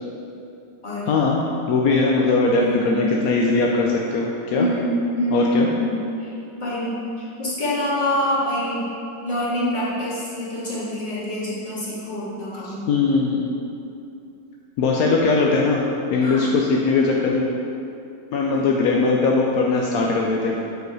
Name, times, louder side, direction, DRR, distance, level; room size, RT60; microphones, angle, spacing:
voice 1, 1.1-1.4 1.7-4.7 5.3-5.7 12.6-13.5 14.8-15.8 16.1-17.4 18.3-20.6, left 3 dB, 75° left, -1 dB, 0.8 m, -20 dB
voice 2, 2.6-3.0 4.6-5.9 6.2-6.3 6.6-8.8 9.2-12.8 16.2-16.5 18.5-18.7, equal, 25° left, -9 dB, 1.8 m, -26 dB
4.9 x 4.7 x 6.1 m, 2.7 s
omnidirectional pair, 2.0 m